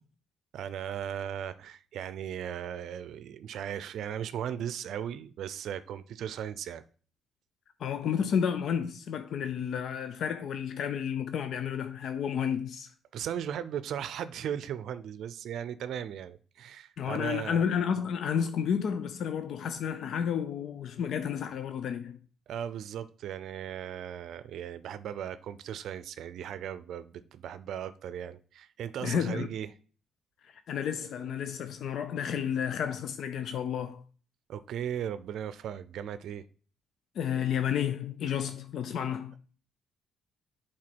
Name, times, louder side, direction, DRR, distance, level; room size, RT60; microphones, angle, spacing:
voice 1, 0.5-6.8 13.1-17.6 22.5-29.7 34.5-36.4, right 9 dB, 75° right, 0.5 m, -37 dB
voice 2, 7.8-12.9 17.0-22.2 29.0-29.5 30.7-34.0 37.2-39.3, left 8 dB, 70° left, 0.6 m, -31 dB
7.6 x 4.3 x 6.0 m
cardioid pair, 90°, 0 cm